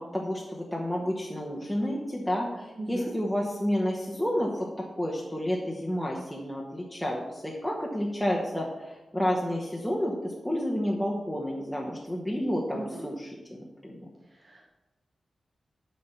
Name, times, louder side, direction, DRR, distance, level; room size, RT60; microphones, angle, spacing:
voice 1, 0.0-4.7 4.9-14.1, equal, ahead, -3 dB, 1.2 m, -30 dB
voice 2, 2.8-3.1 12.7-13.1 14.3-14.6, right 2 dB, 35° right, -2 dB, 1.5 m, -38 dB
10.5 x 4.3 x 6.8 m, 1.1 s
wide cardioid pair, 125°, 0 cm